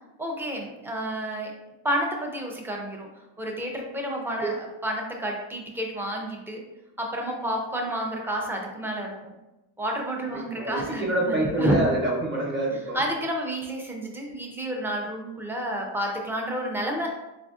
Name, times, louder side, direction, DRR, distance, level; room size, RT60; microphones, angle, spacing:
voice 1, 0.2-1.5 1.8-3.1 3.4-6.6 7.0-9.3 9.8-11.8 12.9-17.1, right 1 dB, 5° right, 0 dB, 0.4 m, -30 dB
voice 2, 10.5-13.0, right 1 dB, 25° right, -3 dB, 0.9 m, -26 dB
4.2 x 2.4 x 2.4 m, 0.98 s
wide cardioid pair, 130°, 47 cm